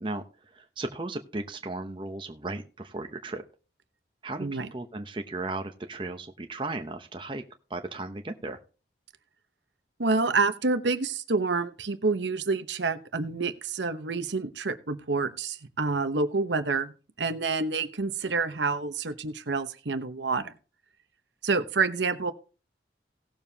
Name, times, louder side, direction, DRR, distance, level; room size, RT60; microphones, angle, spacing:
voice 1, 0.0-3.4 4.2-7.4 7.7-8.6, right 2 dB, 30° right, 5 dB, 0.8 m, -36 dB
voice 2, 10.0-16.9 17.2-20.5 21.4-22.3, right 4 dB, 80° right, 10 dB, 1.0 m, -28 dB
18.0 x 7.1 x 2.8 m, 0.35 s
head